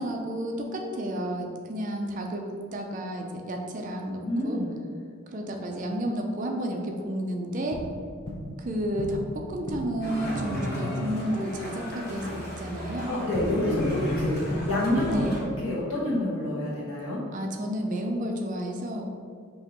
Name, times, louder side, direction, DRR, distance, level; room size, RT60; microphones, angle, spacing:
voice 1, 0.0-4.6 5.3-7.8 8.6-13.1 15.1-15.3 17.3-19.1, equal, 35° right, 2 dB, 0.4 m, -31 dB
voice 2, 4.2-4.7 13.1-14.4 14.7-15.3 15.6-17.2, left 1 dB, 85° left, -6 dB, 1.4 m, -27 dB
sound 1, 7.7-8.7 9.0-10.1 13.3-15.6, left 1 dB, 25° left, 0.5 m, -35 dB
sound 2, 10.0-15.4, equal, 50° left, 1.0 m, -34 dB
5.3 x 2.8 x 2.9 m, 2.2 s
head